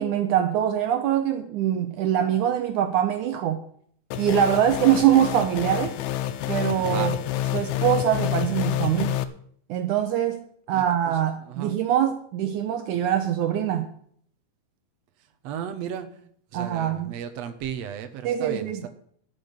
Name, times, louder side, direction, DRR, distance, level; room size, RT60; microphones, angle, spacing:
voice 1, 0.0-3.6 4.2-6.0 6.5-7.2 7.5-9.2 9.7-13.9 16.5-17.2 18.2-18.8, right 10 dB, 85° right, 8 dB, 1.7 m, -23 dB
sound 1, 4.1-9.2, left 12 dB, 80° left, 2.6 m, -28 dB
voice 2, 6.8-7.1 10.7-11.8 15.4-18.9, right 9 dB, 65° right, 8 dB, 1.7 m, -35 dB
13.5 x 6.1 x 9.0 m, 0.62 s
omnidirectional pair, 4.6 m